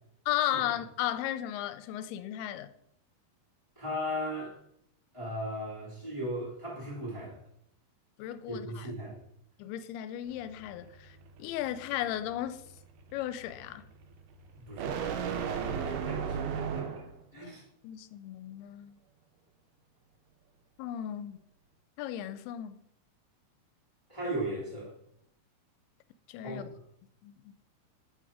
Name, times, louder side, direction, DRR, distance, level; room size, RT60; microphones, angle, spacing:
voice 1, 0.3-2.7 8.2-8.9 9.6-12.6 13.1-13.8 17.3-17.6 17.8-18.9 20.8-21.4 22.0-22.8 26.3-26.7 27.2-27.6, left 12 dB, 85° left, 2.5 m, -35 dB
voice 2, 3.7-4.6 5.1-7.4 8.5-9.2 14.5-17.0 17.3-17.6 24.1-24.9 26.4-26.6, equal, 30° left, 0.6 m, -37 dB
sound 1, 10.3-17.2, right 7 dB, 80° right, 1.9 m, -37 dB
5.4 x 5.0 x 4.8 m
omnidirectional pair, 4.5 m